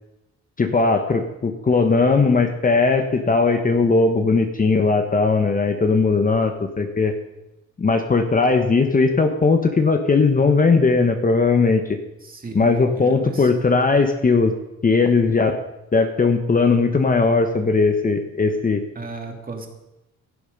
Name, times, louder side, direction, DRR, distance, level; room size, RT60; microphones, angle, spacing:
voice 1, 0.6-7.1 7.8-11.8 12.5-14.5 14.8-15.6 15.9-18.8, left 4 dB, 30° left, 6 dB, 1.1 m, -18 dB
voice 2, 12.2-13.5 18.9-19.7, right 3 dB, 30° right, 2 dB, 2.5 m, -35 dB
16.0 x 7.0 x 5.3 m, 0.95 s
cardioid pair, 90°, 30 cm